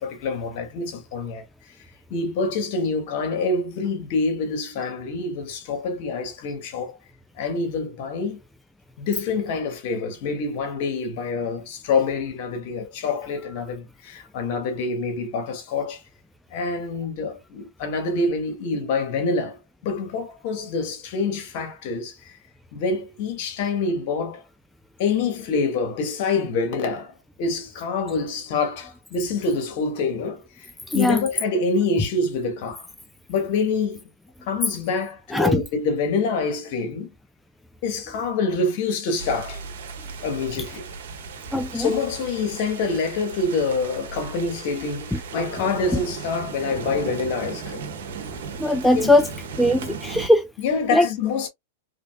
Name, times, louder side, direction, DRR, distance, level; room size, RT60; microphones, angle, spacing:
voice 1, 0.0-1.9 2.1-7.0 7.4-8.4 9.0-16.0 16.5-22.4 22.7-24.4 25.0-32.9 33.3-34.1 34.4-37.1 37.8-39.6 40.2-40.9 41.7-47.9 49.0-49.1 50.6-51.5, left 4 dB, 55° left, 1.7 m, -26 dB
sound 1, 39.2-50.3, right 5 dB, 70° right, 1.4 m, -36 dB
voice 2, 41.5-41.9 48.6-49.2 49.6-50.5 50.9-51.1, left 1 dB, 5° left, 0.4 m, -19 dB
3.9 x 3.3 x 2.3 m
hypercardioid pair, 120°, 0 cm